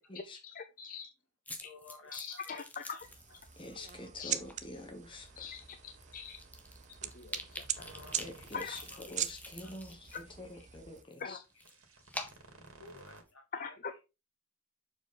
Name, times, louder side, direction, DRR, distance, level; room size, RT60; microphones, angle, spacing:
voice 1, 0.5-1.1 1.6-1.7 2.1-3.1 4.2-4.3 5.4-5.6 6.1-6.4 7.0-7.9 8.5-8.8 9.1-9.2 10.1-10.2 11.2-11.4 13.5-13.9, left 6 dB, 40° left, 0.6 m, -42 dB
sound 1, 1.5-3.9 4.3-4.6 5.3-5.4 5.7-5.8 6.0-10.2 10.5-13.3, left 1 dB, 5° left, 1.0 m, -47 dB
voice 2, 1.6-2.6 2.9-3.0 3.7-3.9 7.8-8.4 8.7-9.0 9.6-9.7 10.1-10.7 12.8-13.8, left 3 dB, 75° left, 2.4 m, -56 dB
sound 2, 3.0-11.0, right 10 dB, 35° right, 0.6 m, -42 dB
voice 3, 3.6-5.3 8.2-8.8 9.1-10.0 10.4-11.4, left 1 dB, 25° left, 1.3 m, -46 dB
sound 3, 5.0-8.9 9.5-9.7 10.1-10.2 11.4-13.2, right 2 dB, 85° right, 2.3 m, -57 dB
6.9 x 5.0 x 3.8 m
head